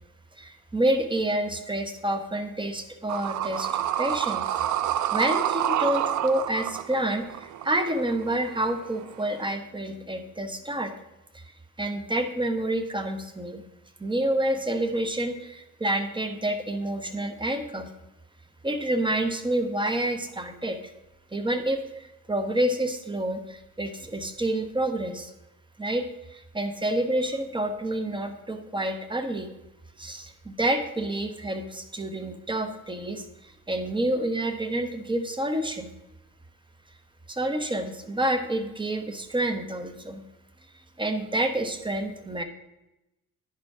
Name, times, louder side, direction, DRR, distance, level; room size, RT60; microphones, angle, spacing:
voice 1, 0.4-3.7 4.0-4.4 5.1-10.9 11.3-11.4 11.8-13.6 14.0-17.9 18.6-20.8 21.3-25.3 25.8-29.5 30.0-35.9 37.3-40.2 41.0-42.4, right 1 dB, 15° right, 7 dB, 1.2 m, -28 dB
sound 1, 3.1-9.4, right 11 dB, 75° right, 0.6 m, -28 dB
10.0 x 5.3 x 4.9 m, 0.92 s
cardioid pair, 90°, 30 cm